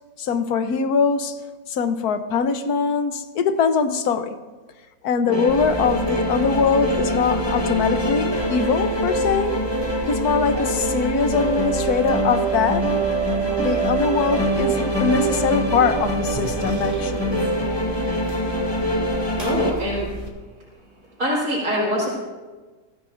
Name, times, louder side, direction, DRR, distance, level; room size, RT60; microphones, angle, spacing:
voice 1, 0.2-1.4 1.7-4.4 5.0-9.5 10.1-12.8 13.6-17.4, left 5 dB, 65° left, 9 dB, 1.4 m, -22 dB
sound 1, 5.3-19.7, right 1 dB, 15° left, 1.4 m, -24 dB
sound 2, 5.5-20.3, right 3 dB, 20° right, 2.2 m, -34 dB
voice 2, 19.4-20.1 21.2-22.1, equal, 65° right, -9 dB, 4.2 m, -24 dB
22.5 x 15.0 x 2.6 m, 1.3 s
omnidirectional pair, 1.8 m